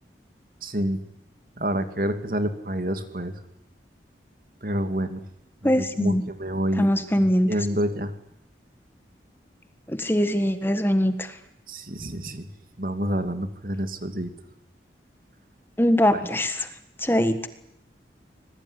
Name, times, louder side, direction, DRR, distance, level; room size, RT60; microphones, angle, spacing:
voice 1, 0.6-1.0 1.6-3.3 4.6-5.2 5.6-6.9 7.2-8.1 11.7-12.5 12.8-14.3 16.1-16.2, equal, 50° right, 8 dB, 2.7 m, -28 dB
voice 2, 5.6-6.2 6.8-7.5 9.9-11.4 15.8-16.7 17.0-17.5, equal, 10° left, 9 dB, 1.6 m, -22 dB
26.5 x 21.0 x 10.0 m, 0.79 s
head